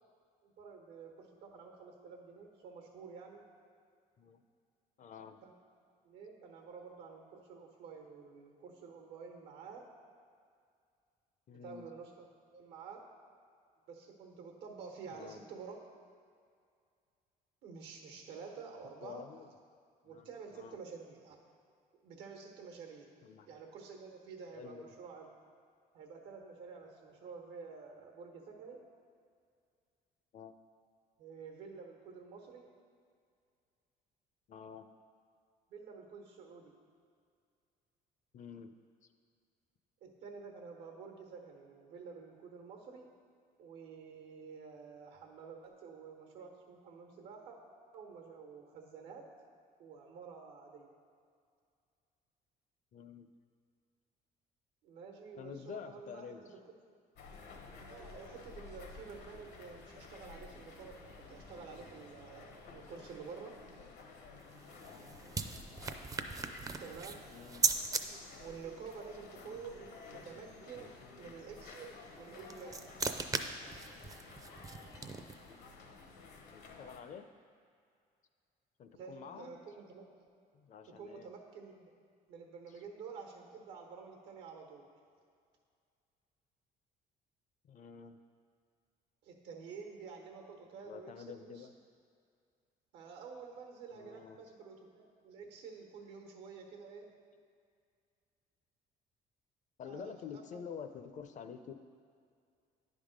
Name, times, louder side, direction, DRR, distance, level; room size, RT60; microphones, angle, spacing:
voice 1, 0.4-3.4 5.4-5.6 6.0-9.9 11.6-13.0 13.9-15.8 17.6-19.2 20.0-21.4 22.0-23.1 23.5-25.3 25.9-28.8 31.2-32.7 35.7-36.7 40.0-43.1 43.6-47.6 47.9-49.3 49.8-50.9 54.8-56.4 56.7-56.8 57.9-63.6 66.8-67.2 68.4-72.8 78.9-80.3 81.0-81.9 82.3-84.8 89.2-91.7 92.9-97.1 99.8-100.6, right 5 dB, 90° right, 2 dB, 1.2 m, -50 dB
voice 2, 5.0-5.4 11.5-11.9 15.1-15.4 19.0-19.5 20.0-20.8 23.2-23.5 24.5-24.9 30.3-30.5 34.5-34.9 38.3-38.8 52.9-53.3 55.4-56.4 67.3-67.7 71.0-71.3 76.5-77.3 78.8-79.6 80.5-81.3 82.7-82.8 87.6-88.2 90.9-91.7 94.0-94.4 99.8-101.7, left 7 dB, 45° left, 9 dB, 0.5 m, -48 dB
sound 1, 57.1-77.0, left 3 dB, 80° left, 1.0 m, -53 dB
sound 2, 64.4-68.0 72.2-75.5, right 4 dB, 20° right, 0.4 m, -38 dB
10.0 x 3.6 x 5.1 m, 2.2 s
cardioid pair, 110°, 17 cm